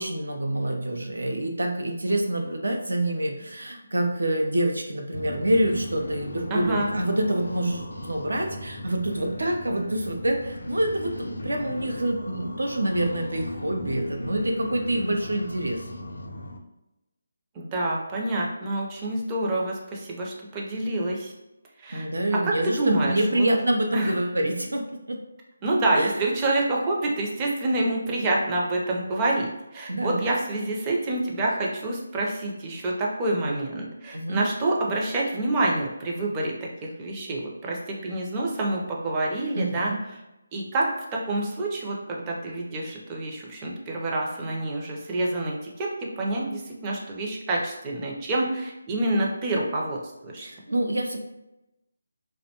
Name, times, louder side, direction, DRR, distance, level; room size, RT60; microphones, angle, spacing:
voice 1, 0.0-15.8 21.9-25.2 25.9-26.2 29.9-30.2 34.1-34.4 39.5-40.0 50.4-51.2, right 1 dB, 80° right, 3 dB, 0.5 m, -26 dB
sound 1, 5.1-16.6, left 1 dB, 80° left, 0.4 m, -37 dB
voice 2, 6.5-6.9 17.6-21.3 21.8-22.1 22.5-23.4 23.9-24.1 25.6-36.5 36.8-39.9 40.5-45.9 46.2-50.0 50.2-50.5, right 2 dB, 20° right, -2 dB, 0.5 m, -27 dB
2.6 x 2.1 x 2.8 m, 0.92 s
figure-of-eight pair, 160°, 0 cm